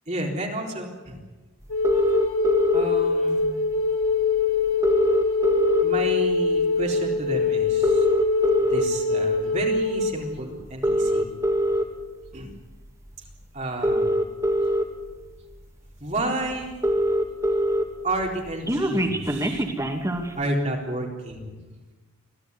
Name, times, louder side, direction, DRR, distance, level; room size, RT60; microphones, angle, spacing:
voice 1, 0.1-1.2 2.7-3.6 5.8-8.1 8.6-11.3 12.3-12.5 13.5-14.2 16.0-16.8 18.0-19.7 20.4-21.6, right 1 dB, 35° right, 0 dB, 3.9 m, -31 dB
Wind instrument woodwind instrument, 1.7-10.1, left 4 dB, 90° left, 7.0 m, -23 dB
sound 1, 1.8-2.9 4.0-4.1 4.4-4.5 4.7-6.1 6.6-6.8 7.7-8.8 9.5-9.8 10.7-11.8 13.1-13.2 13.7-14.8 15.5-15.6 15.9-16.0 16.2-16.3 16.5-17.8 18.2-20.3, equal, 15° right, 2.4 m, -23 dB
25.5 x 16.5 x 9.8 m, 1.2 s
head